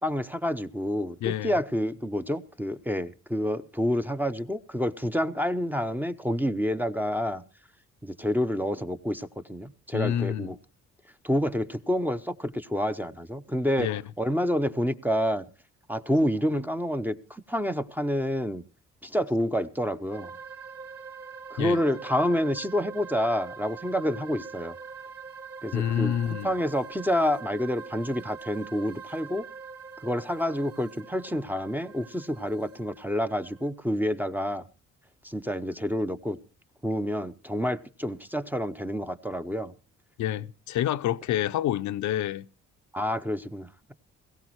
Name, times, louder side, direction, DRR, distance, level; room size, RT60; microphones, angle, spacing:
voice 1, 0.0-7.4 8.0-10.6 11.2-13.9 14.2-15.4 15.9-18.6 19.0-20.3 21.5-24.7 25.6-26.1 26.4-29.4 30.0-34.7 35.2-36.4 36.8-39.7 42.9-43.9, equal, 5° right, 0.6 m, -28 dB
voice 2, 1.2-1.5 9.9-10.5 13.8-14.0 21.6-21.8 25.7-26.5 40.2-42.5, left 11 dB, 70° left, 0.6 m, -28 dB
sound 1, 20.1-33.7, right 5 dB, 50° right, 3.6 m, -44 dB
18.0 x 16.0 x 3.1 m
cardioid pair, 90°, 30 cm